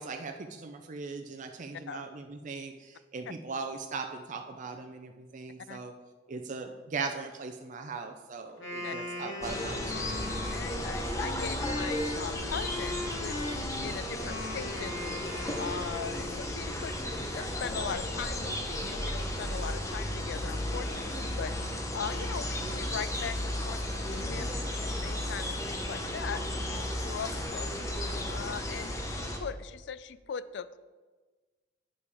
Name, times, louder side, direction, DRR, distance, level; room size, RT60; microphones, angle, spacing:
voice 1, 0.0-5.9 6.3-10.2 24.3-24.6, right 4 dB, 40° right, 4 dB, 0.5 m, -39 dB
Wind instrument woodwind instrument, 8.5-16.5, left 1 dB, 85° left, 1.8 m, -39 dB
sound 1, 9.4-29.4, left 1 dB, 15° left, 0.8 m, -34 dB
voice 2, 10.5-24.5 25.0-30.8, left 7 dB, 60° left, 14 dB, 0.4 m, -40 dB
8.4 x 5.3 x 4.8 m, 1.3 s
head